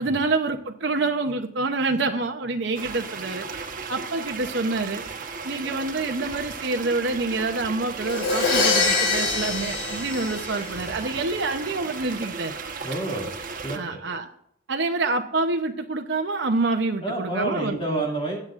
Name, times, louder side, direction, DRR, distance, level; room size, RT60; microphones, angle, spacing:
voice 1, 0.0-3.6 3.9-5.0 5.4-12.6 13.7-14.3 14.7-18.0, right 3 dB, 60° right, 4 dB, 0.8 m, -27 dB
sound 1, 2.7-13.8, right 4 dB, 45° right, 1.2 m, -35 dB
Crash cymbal, 8.0-11.0, left 4 dB, 80° left, 5.0 m, -24 dB
voice 2, 12.8-13.3 13.6-14.0 17.0-18.4, right 2 dB, 25° left, -1 dB, 2.4 m, -29 dB
20.5 x 7.7 x 2.5 m, 0.75 s
head